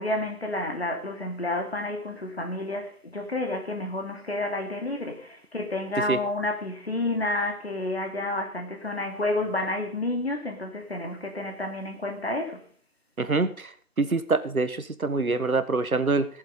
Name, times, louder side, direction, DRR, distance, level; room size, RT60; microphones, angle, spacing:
voice 1, 0.0-12.6, left 2 dB, 40° left, 2.8 m, -30 dB
voice 2, 13.2-13.7 14.0-16.3, right 3 dB, 65° right, 1.6 m, -25 dB
18.0 x 7.5 x 5.4 m
figure-of-eight pair, 175°, 46 cm